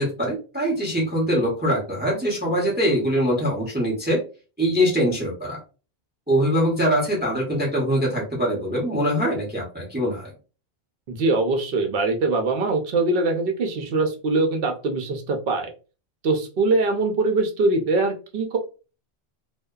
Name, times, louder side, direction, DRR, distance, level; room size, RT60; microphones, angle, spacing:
voice 1, 0.0-4.2 4.6-5.6 6.3-10.3, equal, 10° right, -2 dB, 0.5 m, -23 dB
voice 2, 11.1-15.7 16.2-18.6, right 3 dB, 65° right, 4 dB, 0.7 m, -22 dB
2.6 x 2.1 x 2.3 m, 0.34 s
omnidirectional pair, 1.1 m